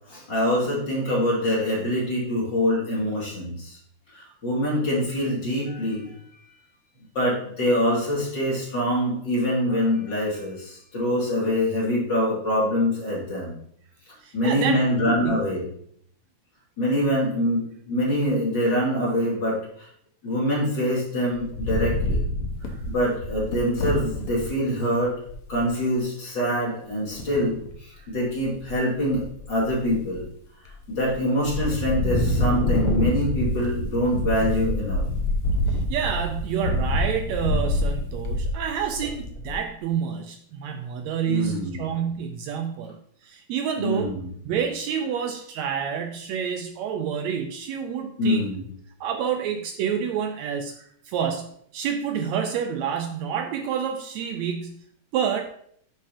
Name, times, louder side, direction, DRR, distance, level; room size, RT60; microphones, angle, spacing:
voice 1, 0.1-3.8 4.1-6.1 7.1-13.6 14.3-15.7 16.8-19.9 20.2-22.2 22.9-25.1 25.5-29.2 29.5-30.2 30.9-35.0 41.3-41.8 43.8-44.3 48.2-48.6, equal, 35° left, -6 dB, 3.2 m, -24 dB
voice 2, 14.2-14.8 15.1-15.4 22.6-22.8 28.0-28.1 35.7-44.1 44.4-48.5 49.0-54.8 55.1-55.5, right 7 dB, 75° right, 5 dB, 1.8 m, -28 dB
Wind, 21.3-24.5 25.0-25.1 25.3-25.7 27.1-27.7 28.2-28.7 29.0-30.2 30.7-31.1 31.4-39.7, left 1 dB, 60° left, 1.7 m, -26 dB
10.0 x 6.2 x 2.9 m, 0.66 s
omnidirectional pair, 3.4 m